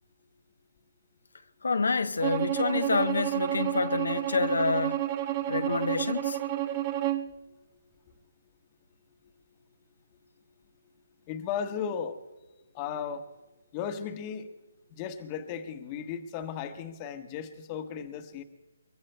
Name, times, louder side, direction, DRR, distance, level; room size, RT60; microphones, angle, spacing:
voice 1, 1.6-5.0 5.5-6.4, left 4 dB, 80° left, 0.8 m, -28 dB
Bowed string instrument, 2.2-7.3, right 13 dB, 25° right, 0.7 m, -30 dB
voice 2, 11.3-12.2 12.7-13.3 13.7-14.5 14.9-18.4, left 7 dB, 25° left, 1.1 m, -35 dB
23.0 x 23.0 x 2.2 m
hypercardioid pair, 155°, 0 cm